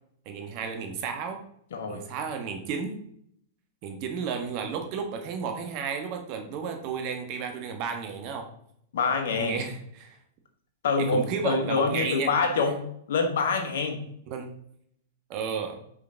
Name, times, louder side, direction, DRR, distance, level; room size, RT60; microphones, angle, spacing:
voice 1, 0.2-1.4 1.9-3.0 3.8-8.5 9.3-10.2 11.0-12.3 14.3-14.5 15.3-15.8, right 6 dB, 45° right, 5 dB, 1.3 m, -33 dB
voice 2, 1.7-2.1 8.9-9.6 10.8-12.8 13.1-14.0, left 4 dB, 70° left, 4 dB, 1.3 m, -26 dB
5.3 x 4.9 x 3.8 m, 0.70 s
hypercardioid pair, 115°, 0 cm